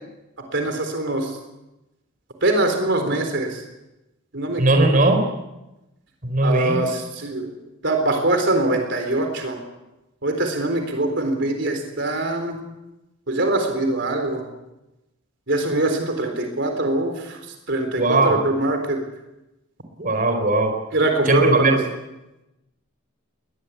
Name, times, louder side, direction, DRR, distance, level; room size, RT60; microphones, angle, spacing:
voice 1, 0.5-1.4 2.4-3.6 4.3-4.8 6.4-7.5 7.8-9.6 10.2-12.6 13.3-14.5 15.5-17.4 17.7-19.0 20.9-21.8, right 2 dB, 60° right, 5 dB, 4.0 m, -23 dB
voice 2, 4.6-5.2 6.2-6.8 18.0-18.4 20.0-20.7 21.3-21.8, right 2 dB, 40° right, 5 dB, 4.3 m, -18 dB
22.0 x 20.5 x 8.5 m, 0.99 s
head